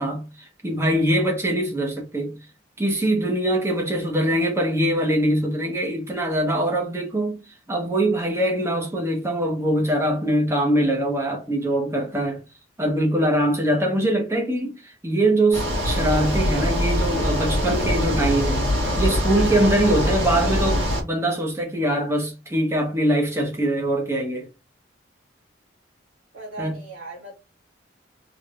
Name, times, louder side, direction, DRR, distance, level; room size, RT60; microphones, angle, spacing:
voice 1, 0.0-2.3 2.8-12.4 12.8-24.5 26.6-26.8, right 1 dB, 15° right, 0.9 m, -23 dB
sound 1, 15.5-21.0, equal, 70° right, 1.7 m, -23 dB
voice 2, 26.3-27.3, right 3 dB, 90° right, 2.2 m, -38 dB
3.5 x 3.2 x 2.4 m
head